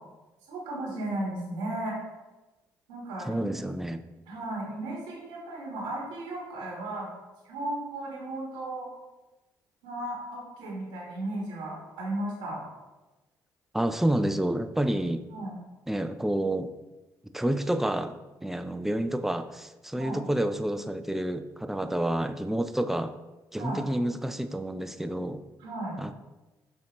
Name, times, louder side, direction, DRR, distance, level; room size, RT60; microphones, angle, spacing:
voice 1, 0.5-2.0 2.9-3.5 4.3-7.1 7.4-8.9 9.8-12.6 15.3-15.6 19.9-20.2 23.6-23.8 25.6-26.0, right 1 dB, 90° right, -4 dB, 1.3 m, -35 dB
voice 2, 3.2-4.0 13.7-15.3 15.9-16.7 17.3-23.2 23.5-25.4 26.0-26.1, right 1 dB, 5° right, 9 dB, 0.3 m, -29 dB
6.3 x 2.7 x 2.9 m, 1.1 s
supercardioid pair, 60°, 8 cm